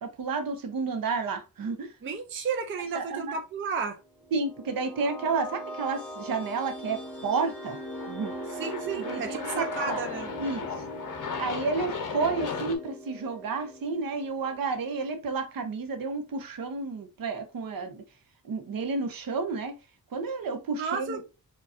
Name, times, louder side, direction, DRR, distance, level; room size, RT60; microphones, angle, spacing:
voice 1, 0.0-1.9 2.9-3.4 4.3-7.8 8.1-8.3 9.0-10.1 10.4-10.7 11.4-18.0 18.4-19.7 20.1-21.2, right 4 dB, 70° right, 0.7 m, -31 dB
voice 2, 2.0-4.0 8.6-10.3 20.7-21.2, right 5 dB, 35° right, 0.4 m, -32 dB
sound 1, 4.2-15.0, right 1 dB, 5° left, 0.6 m, -40 dB
Aircraft, 7.0-12.7, left 5 dB, 60° left, 0.7 m, -37 dB
4.8 x 2.3 x 2.5 m
wide cardioid pair, 170°, 36 cm